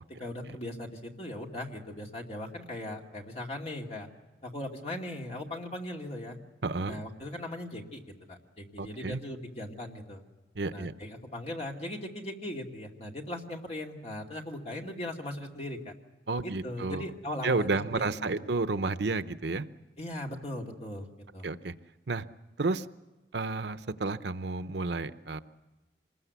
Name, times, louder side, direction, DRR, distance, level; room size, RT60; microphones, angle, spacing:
voice 1, 0.2-4.1 4.4-6.4 6.9-8.0 8.3-10.2 10.7-15.9 16.4-17.7 17.9-18.3 20.0-21.1 21.3-21.5, left 1 dB, 35° left, 1 dB, 2.3 m, -39 dB
voice 2, 6.6-7.0 8.8-9.2 10.6-10.9 16.3-17.1 17.4-19.6 21.4-21.7 22.1-22.3 22.6-22.9 23.3-25.4, right 3 dB, 75° right, 12 dB, 0.7 m, -31 dB
26.0 x 20.5 x 8.2 m, 1.2 s
head